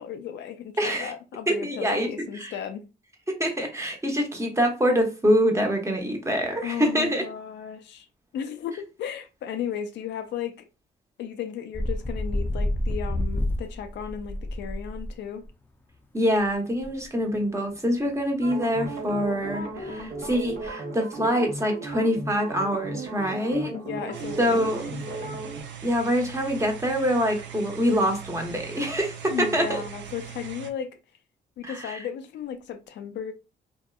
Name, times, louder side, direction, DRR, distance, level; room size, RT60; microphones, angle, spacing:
voice 1, 0.0-2.8 6.6-8.1 8.3-10.6 11.2-15.4 23.7-25.3 29.3-31.0 31.6-33.3, left 8 dB, 75° left, 0.4 m, -35 dB
voice 2, 0.8-1.1 1.5-2.5 3.3-7.2 16.1-23.7 24.4-24.8 25.8-29.8 31.6-32.0, equal, 15° right, 0.8 m, -25 dB
sound 1, 11.7-15.1 15.4-15.5 16.5-16.6 16.8-16.9 17.3-17.4 17.7-17.9 18.6-18.7 18.9-20.7, left 1 dB, 10° left, 0.5 m, -30 dB
sound 2, 18.4-25.6, right 2 dB, 55° right, 1.0 m, -35 dB
sound 3, 24.1-30.7, right 8 dB, 80° right, 0.4 m, -41 dB
2.7 x 2.3 x 2.2 m
cardioid pair, 65°, 19 cm